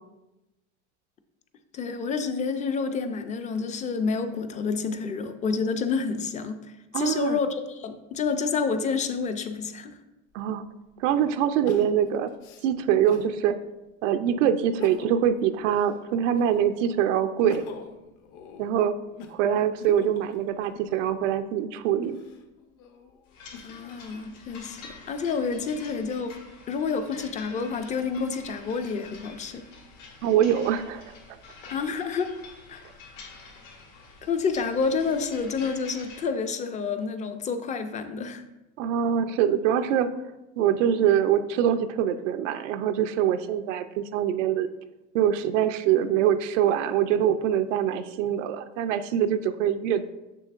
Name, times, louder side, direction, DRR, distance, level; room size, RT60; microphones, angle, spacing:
voice 1, 1.7-6.7 6.9-10.0 23.6-24.8 25.1-26.4 26.7-29.7 31.7-32.3 32.7-32.8 34.2-38.4, left 5 dB, 20° left, 8 dB, 0.4 m, -29 dB
voice 2, 6.9-7.4 10.3-10.6 11.0-12.3 12.6-13.6 14.0-17.7 18.6-19.0 19.3-22.2 30.2-31.2 38.8-40.1 40.6-44.7 45.1-50.1, right 9 dB, 90° right, 9 dB, 0.5 m, -24 dB
Crying sobbing, 10.3-10.4 11.6-13.3 13.9-14.0 14.6-15.3 15.7-16.7 17.2-21.2 21.9-24.0 24.5-25.4, left 6 dB, 55° left, 0.9 m, -45 dB
sound 1, 23.3-36.2, left 4 dB, 80° left, 2.1 m, -47 dB
6.7 x 6.4 x 2.4 m, 1.0 s
supercardioid pair, 125°, 36 cm